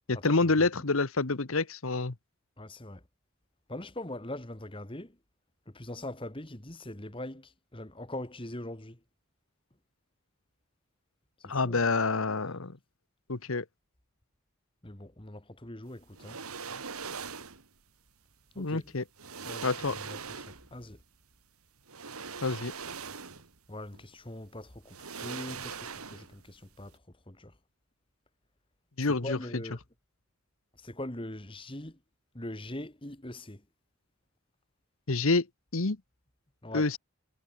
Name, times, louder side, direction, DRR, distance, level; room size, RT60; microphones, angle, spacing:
voice 1, 0.1-2.1 11.5-12.7 13.3-13.6 18.6-19.0 19.6-20.0 22.4-22.7 29.0-29.4 35.1-35.5 35.7-36.0 36.7-37.0, left 3 dB, 70° left, 1.2 m, -27 dB
voice 2, 2.6-3.0 3.7-5.1 5.7-9.0 11.4-11.8 14.8-16.4 18.6-18.9 19.4-21.0 23.7-26.9 27.3-27.5 29.0-29.8 30.8-32.0 32.3-33.6 36.6-36.9, left 1 dB, 25° left, 1.8 m, -42 dB
sound 1, 16.1-17.7 18.7-18.8 19.2-20.8 21.9-23.6 23.9-24.1 24.9-26.5 26.7-26.9, right 5 dB, 85° right, 2.5 m, -41 dB
head